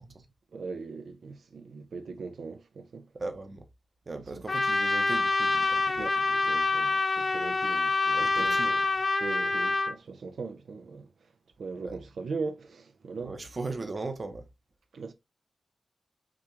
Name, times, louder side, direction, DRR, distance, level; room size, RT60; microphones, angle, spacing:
voice 1, 0.5-3.1 6.0-6.1 6.4-8.6 9.2-11.1 11.6-13.4 14.9-15.1, right 4 dB, 85° right, 0.5 m, -39 dB
voice 2, 3.1-3.6 4.1-6.4 8.1-8.9 11.8-12.0 13.2-14.5, right 3 dB, 40° right, 0.8 m, -38 dB
Trumpet, 4.5-9.9, left 3 dB, 35° left, 0.6 m, -26 dB
5.9 x 2.4 x 3.0 m
wide cardioid pair, 120°, 0 cm